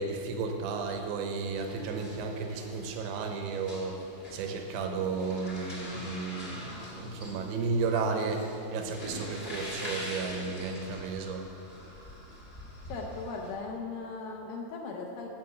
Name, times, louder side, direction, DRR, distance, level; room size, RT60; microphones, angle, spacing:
voice 1, 0.0-4.0 4.3-11.4, right 4 dB, 85° right, 4 dB, 3.2 m, -33 dB
sound 1, 1.5-13.5, equal, 55° left, 0.6 m, -44 dB
voice 2, 12.9-15.3, left 4 dB, 75° left, 0 dB, 2.2 m, -38 dB
11.5 x 5.9 x 7.6 m, 2.7 s
omnidirectional pair, 5.1 m